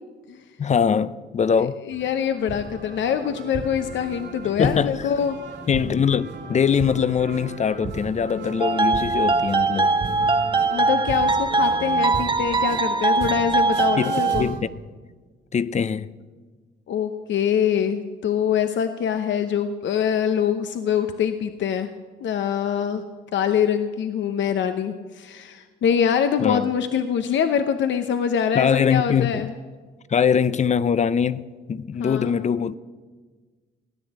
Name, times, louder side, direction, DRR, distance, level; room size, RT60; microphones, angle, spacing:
voice 1, 0.6-1.8 4.6-5.1 5.7-10.0 14.0-14.7 15.5-16.1 26.4-26.7 28.5-29.6 30.1-32.7, left 7 dB, 35° left, 0.6 m, -22 dB
voice 2, 1.6-5.4 10.7-14.5 16.9-21.9 22.2-23.0 23.3-29.5 32.0-32.3, left 8 dB, 70° left, 0.9 m, -24 dB
sound 1, 1.9-14.6, right 5 dB, 60° right, 3.1 m, -36 dB
sound 2, 8.6-14.4, right 3 dB, 25° right, 1.1 m, -21 dB
17.5 x 10.0 x 8.1 m
cardioid pair, 90°, 20 cm